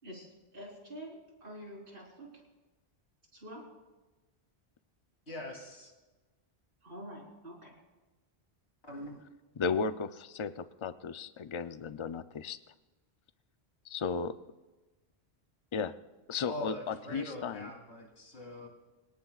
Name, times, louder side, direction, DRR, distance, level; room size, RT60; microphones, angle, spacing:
voice 1, 0.0-2.4 3.3-3.7 6.8-7.8, equal, 60° right, -2 dB, 4.4 m, -47 dB
voice 2, 5.3-5.9 8.9-9.2 16.5-18.7, equal, 85° left, -1 dB, 3.5 m, -42 dB
voice 3, 9.5-12.6 13.9-14.4 15.7-15.9 16.3-17.7, left 5 dB, 40° left, 11 dB, 0.4 m, -35 dB
25.5 x 18.0 x 2.4 m, 1.2 s
omnidirectional pair, 1.1 m